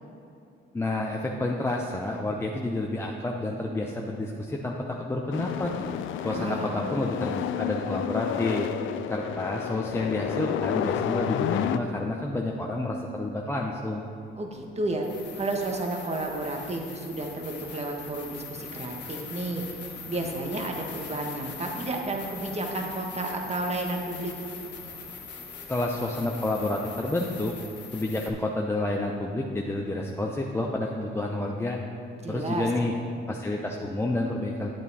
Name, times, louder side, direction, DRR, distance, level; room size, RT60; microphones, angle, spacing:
voice 1, 0.7-5.7 6.2-8.7 9.1-14.0 25.7-27.5 27.9-31.8 32.3-32.9 33.3-34.7, left 2 dB, 10° left, -1 dB, 0.6 m, -29 dB
sound 1, 5.3-11.8, left 10 dB, 80° left, 0.4 m, -30 dB
voice 2, 6.2-6.9 14.4-24.3 32.2-32.7, right 2 dB, 35° right, 2 dB, 1.4 m, -32 dB
sound 2, 15.0-28.3, left 5 dB, 65° left, 1.4 m, -42 dB
9.1 x 8.1 x 4.1 m, 2.6 s
cardioid pair, 90°, 20 cm